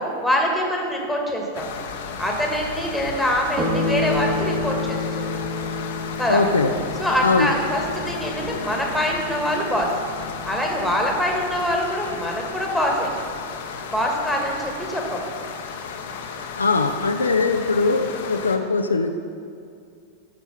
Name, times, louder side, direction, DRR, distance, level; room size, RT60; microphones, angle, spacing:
voice 1, 0.0-1.7 2.2-5.2 6.2-6.4 7.0-9.9 10.4-13.1 13.9-15.2, equal, ahead, -1 dB, 1.6 m, -24 dB
sound 1, 1.5-18.6, left 6 dB, 55° left, 0.8 m, -34 dB
sound 2, 3.6-12.4, left 2 dB, 30° right, 1.6 m, -30 dB
voice 2, 6.3-6.7 7.2-7.5 16.5-19.1, left 3 dB, 75° left, 6 dB, 0.5 m, -21 dB
13.5 x 4.7 x 5.6 m, 2.3 s
figure-of-eight pair, 90°, 0 cm